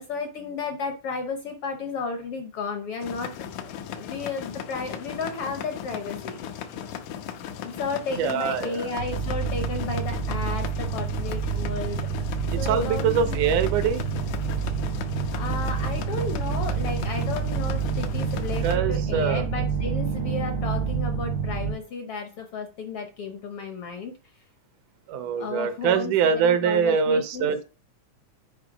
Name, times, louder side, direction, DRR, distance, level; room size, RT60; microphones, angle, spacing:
voice 1, 0.0-3.3 3.9-6.4 7.6-12.1 12.6-13.6 15.3-24.1 25.4-27.5, left 4 dB, 70° left, 6 dB, 1.4 m, -33 dB
sound 1, 3.0-18.8, left 9 dB, 90° left, 2.3 m, -37 dB
voice 2, 8.2-8.9 12.5-14.0 18.6-19.5 25.1-27.6, right 7 dB, 85° right, 10 dB, 2.4 m, -24 dB
sound 2, 9.0-21.7, right 6 dB, 55° right, 0.7 m, -28 dB
8.1 x 4.3 x 4.9 m, 0.33 s
omnidirectional pair, 3.4 m